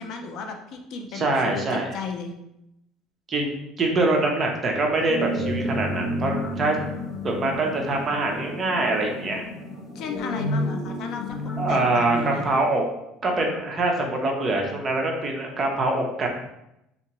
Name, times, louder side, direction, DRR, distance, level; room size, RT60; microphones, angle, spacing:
voice 1, 0.0-2.3 9.9-12.4, left 4 dB, 50° left, 5 dB, 0.4 m, -35 dB
voice 2, 1.1-1.9 3.3-3.5 3.8-6.8 7.2-9.4 11.6-12.8 13.2-16.3, right 2 dB, 25° right, 1 dB, 0.5 m, -24 dB
sound 1, 5.1-12.6, left 1 dB, 5° left, 0.9 m, -31 dB
3.4 x 2.8 x 2.9 m, 0.84 s
cardioid pair, 160°, 0 cm